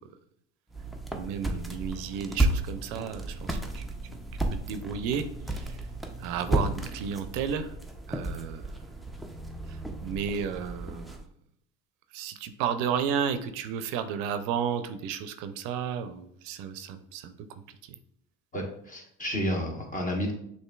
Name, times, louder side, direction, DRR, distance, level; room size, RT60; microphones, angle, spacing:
sound 1, 0.7-11.2, right 1 dB, ahead, 0.4 m, -33 dB
voice 1, 1.1-3.8 4.5-5.2 5.5-5.7 6.2-7.7 8.1-8.6 10.0-11.2 12.1-17.3, right 7 dB, 75° right, 10 dB, 0.5 m, -32 dB
voice 2, 18.5-20.3, equal, 25° left, 1 dB, 1.2 m, -31 dB
6.5 x 2.6 x 2.3 m, 0.69 s
supercardioid pair, 95°, 33 cm